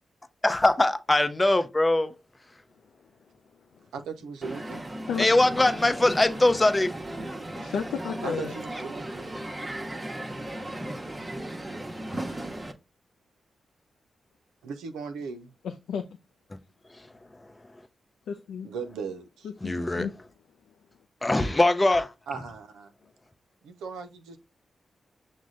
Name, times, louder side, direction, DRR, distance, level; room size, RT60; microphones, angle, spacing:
voice 1, 0.4-2.1 5.2-6.9 19.6-20.1 21.2-22.1, left 2 dB, 25° left, 0.6 m, -22 dB
voice 2, 3.9-4.8 8.2-9.3 14.6-15.5 18.6-19.5 22.3-22.9 23.6-24.4, right 5 dB, 85° right, 0.5 m, -37 dB
Crowd, 4.4-12.7, right 1 dB, 25° right, 0.9 m, -36 dB
voice 3, 7.6-8.5 15.6-16.0 18.3-18.7 19.6-20.1, left 7 dB, 80° left, 0.3 m, -32 dB
6.1 x 2.2 x 3.7 m
supercardioid pair, 40°, 0 cm